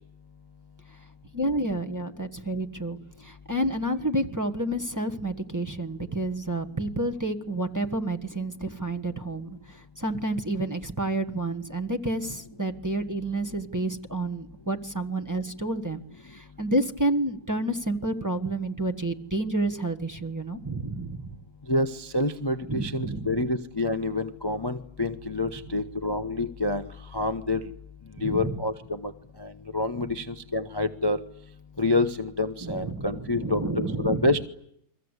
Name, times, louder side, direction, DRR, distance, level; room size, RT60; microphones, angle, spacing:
voice 1, 1.3-21.3 22.7-23.3 28.2-28.6 30.0-30.1 32.6-34.3, right 2 dB, 10° right, 4 dB, 1.2 m, -30 dB
voice 2, 21.7-26.9 27.1-27.6 28.2-29.1 29.4-31.2 31.8-34.5, left 2 dB, 20° left, 8 dB, 0.6 m, -27 dB
30.0 x 23.0 x 8.2 m, 0.75 s
omnidirectional pair, 2.1 m